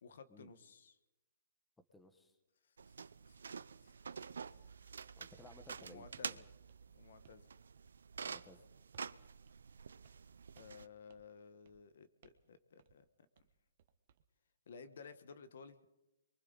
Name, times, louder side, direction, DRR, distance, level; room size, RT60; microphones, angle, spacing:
voice 1, 0.0-1.0 2.9-4.7 5.8-6.4 6.9-7.5 10.5-13.0 14.7-15.8, left 5 dB, 60° left, 12 dB, 1.3 m, -56 dB
voice 2, 1.9-2.4 5.2-6.4 8.2-8.6, left 1 dB, 5° left, 8 dB, 1.1 m, -59 dB
sound 1, 2.8-10.9, right 6 dB, 85° right, 0.6 m, -49 dB
sound 2, 6.1-6.3 6.7-7.5 7.8-8.1 8.3-8.5 8.9-9.2 9.5-9.6 10.0-10.3 10.5-10.8 11.1-11.3 11.6-11.9 12.2-12.5 12.8-13.0 13.3-14.2, right 8 dB, 40° right, 1.2 m, -67 dB
29.5 x 23.5 x 4.0 m, 0.93 s
hypercardioid pair, 165°, 0 cm